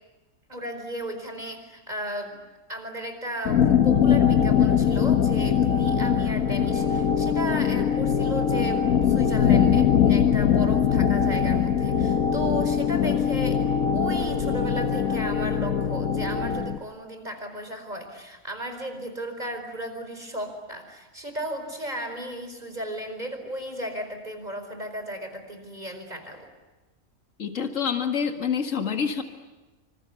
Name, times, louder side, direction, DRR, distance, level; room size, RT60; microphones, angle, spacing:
voice 1, 0.5-2.4 2.7-13.6 13.9-26.5, right 1 dB, 30° right, 6 dB, 4.9 m, -35 dB
sound 1, 3.5-16.8, left 8 dB, 85° left, 1.5 m, -22 dB
voice 2, 27.4-29.2, left 7 dB, 65° left, 4 dB, 2.3 m, -27 dB
27.0 x 26.5 x 8.4 m, 1.1 s
omnidirectional pair, 1.4 m